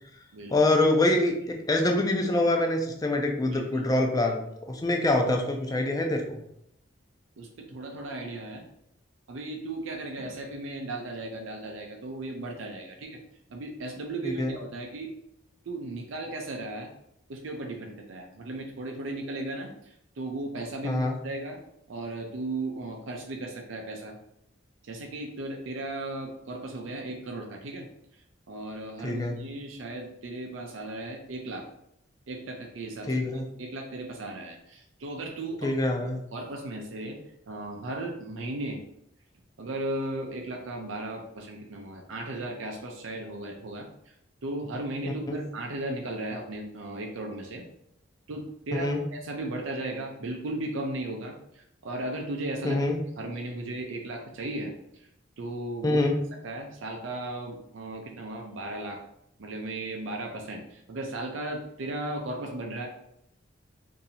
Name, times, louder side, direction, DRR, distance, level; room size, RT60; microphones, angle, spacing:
voice 1, 0.5-1.4 1.7-6.4 14.2-14.5 20.8-21.2 29.0-29.3 33.1-33.5 35.6-36.2 45.3-45.4 48.7-49.0 52.6-53.0 55.8-56.2, left 2 dB, 20° left, 2 dB, 0.4 m, -25 dB
voice 2, 3.5-3.9 7.4-8.6 9.3-13.2 13.5-15.1 15.7-16.9 17.3-21.6 21.9-24.1 24.8-27.9 28.5-31.7 32.3-35.7 36.3-37.2 37.5-38.8 39.6-44.1 44.4-47.6 48.3-52.8 53.2-55.0 55.4-56.0 56.4-59.0 59.4-62.9, right 2 dB, 80° right, 1 dB, 0.5 m, -36 dB
2.7 x 2.7 x 4.0 m, 0.76 s
head